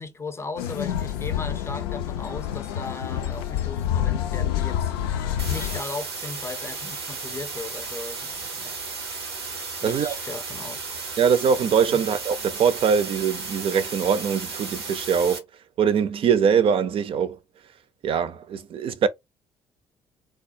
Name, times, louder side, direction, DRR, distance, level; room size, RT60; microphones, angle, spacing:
voice 1, 0.0-8.8 9.8-10.8 11.9-12.0, left 3 dB, 20° left, 0.6 m, -37 dB
sound 1, 0.6-5.8, left 10 dB, 70° left, 0.4 m, -27 dB
sound 2, 5.4-15.4, right 4 dB, 85° right, 0.7 m, -34 dB
voice 2, 9.8-10.2 11.2-15.4 15.8-17.4 18.0-19.1, right 7 dB, 45° right, 0.5 m, -22 dB
3.4 x 2.1 x 2.6 m
figure-of-eight pair, 50°, 13 cm